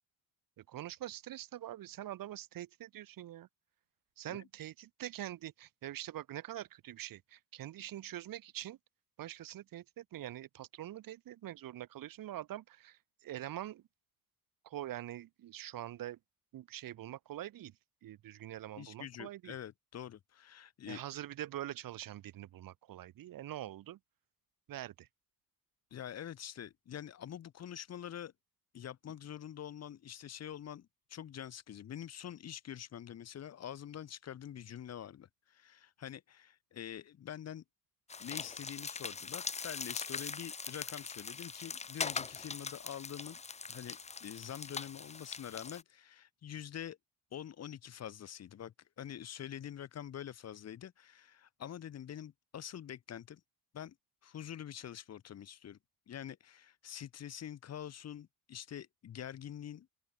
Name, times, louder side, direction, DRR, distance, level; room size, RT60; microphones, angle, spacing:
voice 1, 0.6-3.5 4.2-8.8 9.2-13.8 14.6-16.2 16.5-17.7 18.0-19.6 20.9-24.0 24.7-25.1, right 13 dB, 75° right, 1.8 m, -44 dB
voice 2, 18.8-21.0 25.9-28.3 28.7-37.6 38.2-43.4 43.7-47.0 47.3-53.4 53.7-53.9 54.2-55.8 56.1-59.9, left 10 dB, 50° left, 1.4 m, -46 dB
sound 1, 38.1-45.8, left 5 dB, 20° left, 0.8 m, -42 dB
open air
wide cardioid pair, 175°, 34 cm